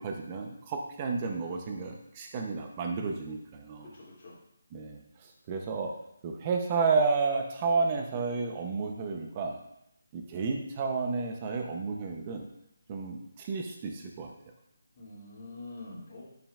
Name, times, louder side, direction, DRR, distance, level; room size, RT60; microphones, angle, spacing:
voice 1, 0.0-3.9 4.7-5.0 5.5-6.0 6.2-9.6 10.1-12.5 12.9-14.3, right 4 dB, 25° right, 2 dB, 0.7 m, -31 dB
voice 2, 3.8-4.4 15.0-16.2, left 2 dB, 35° left, -8 dB, 2.6 m, -45 dB
11.0 x 6.1 x 2.5 m, 0.78 s
figure-of-eight pair, 165°, 0 cm